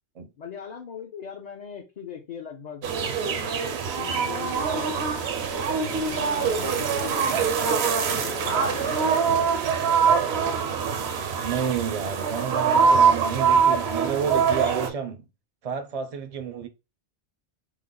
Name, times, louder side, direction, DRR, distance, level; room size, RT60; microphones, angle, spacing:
voice 1, 0.4-2.9 3.2-3.5 3.9-4.9 6.1-7.3 8.1-9.6, left 7 dB, 50° left, 0.6 m, -39 dB
sound 1, 2.8-14.9, right 6 dB, 70° right, 0.8 m, -23 dB
sound 2, 4.5-9.5, left 6 dB, 80° left, 0.9 m, -41 dB
voice 2, 11.4-15.3 15.6-16.7, right 7 dB, 50° right, 0.4 m, -30 dB
3.1 x 2.0 x 3.7 m
omnidirectional pair, 1.1 m